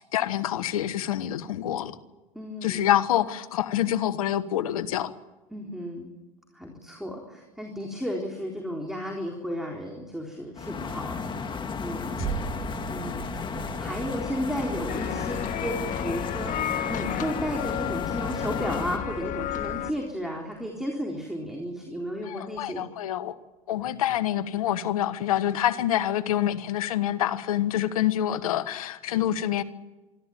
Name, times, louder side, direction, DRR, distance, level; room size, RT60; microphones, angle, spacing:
voice 1, 0.0-1.9 2.6-5.1 12.4-12.5 22.2-23.4 23.7-29.6, left 12 dB, 80° left, 14 dB, 1.3 m, -26 dB
voice 2, 2.3-2.9 5.5-6.1 6.5-12.4 12.9-22.9, equal, ahead, 1 dB, 4.0 m, -34 dB
sound 1, 10.6-19.0, left 5 dB, 25° left, 2.2 m, -34 dB
sound 2, 12.2-20.7 21.2-21.3, right 7 dB, 55° right, 2.8 m, -41 dB
sound 3, 14.9-19.9, left 10 dB, 45° left, 1.7 m, -32 dB
25.5 x 13.5 x 9.3 m, 1.1 s
hypercardioid pair, 90°, 18 cm